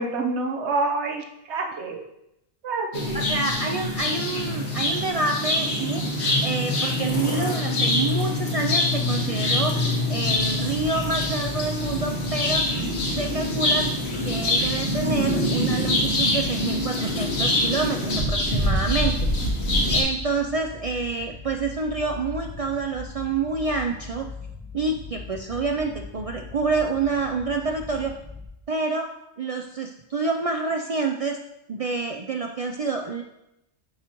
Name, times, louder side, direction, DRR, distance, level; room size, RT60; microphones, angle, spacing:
voice 1, 0.0-2.0 2.6-3.2, right 3 dB, 85° right, 2 dB, 1.2 m, -27 dB
sound 1, 2.9-20.0, left 1 dB, 70° left, 1.6 m, -24 dB
voice 2, 3.1-9.8 10.1-12.8 13.2-13.9 14.2-19.2 19.9-24.3 24.7-28.1 28.7-29.1 29.4-31.4 31.7-33.2, right 3 dB, 55° right, 3 dB, 0.4 m, -28 dB
sound 2, 11.7-28.5, left 4 dB, ahead, 1.5 m, -40 dB
9.4 x 4.9 x 2.9 m, 0.85 s
omnidirectional pair, 1.1 m